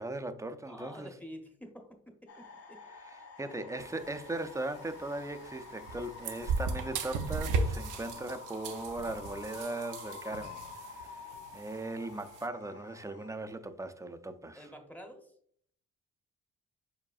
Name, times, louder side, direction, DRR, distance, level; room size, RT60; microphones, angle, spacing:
voice 1, 0.0-1.2 2.9-14.7, right 2 dB, 10° right, 0.4 m, -39 dB
voice 2, 0.6-2.8 14.6-15.3, equal, 5° left, 0.8 m, -49 dB
sound 1, 2.3-13.3, left 5 dB, 50° left, 0.9 m, -49 dB
sound 2, 3.8-12.5, right 4 dB, 90° right, 0.7 m, -38 dB
4.9 x 4.6 x 2.3 m
cardioid pair, 90°, 30 cm